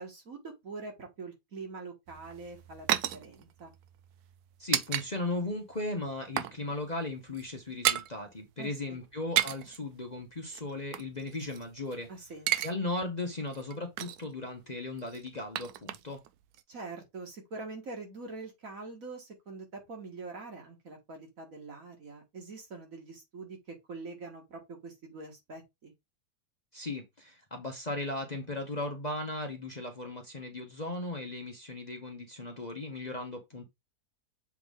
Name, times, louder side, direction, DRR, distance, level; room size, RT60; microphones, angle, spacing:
voice 1, 0.0-3.7 8.6-9.0 12.1-12.6 16.7-25.9, right 3 dB, 60° right, 2.2 m, -44 dB
sound 1, 2.1-5.1 5.4-5.5 5.9-6.6 6.8-7.0 7.3-8.1 9.1-9.8 10.5-12.0 12.2-12.7 13.0-13.1 13.5-14.3 15.0-16.3 16.5-16.6, right 12 dB, 75° right, 1.1 m, -33 dB
voice 2, 4.6-12.1 12.6-16.2 26.7-33.6, left 2 dB, 30° left, 1.0 m, -37 dB
7.2 x 3.9 x 3.6 m
omnidirectional pair, 1.7 m